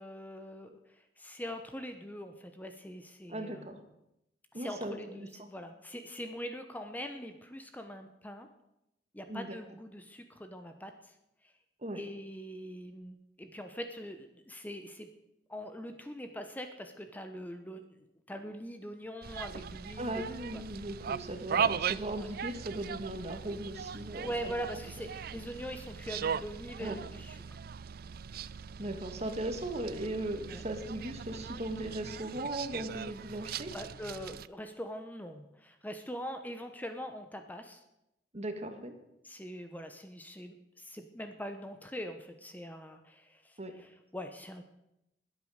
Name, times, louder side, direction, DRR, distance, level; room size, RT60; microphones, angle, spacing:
voice 1, 0.0-3.7 4.5-8.5 9.1-11.1 11.9-15.1 15.5-17.8 18.3-20.2 20.5-20.6 22.2-22.3 24.2-27.4 30.5-30.6 33.7-37.8 39.2-44.6, equal, 10° left, 6 dB, 1.0 m, -42 dB
voice 2, 3.3-3.8 4.5-5.5 9.3-9.6 11.8-12.0 20.0-24.5 26.8-27.0 28.8-33.7 38.3-38.9 43.6-43.7, right 1 dB, 40° right, 6 dB, 1.9 m, -38 dB
sound 1, 19.2-34.5, right 7 dB, 55° right, 0.4 m, -39 dB
20.5 x 8.7 x 6.5 m, 0.86 s
head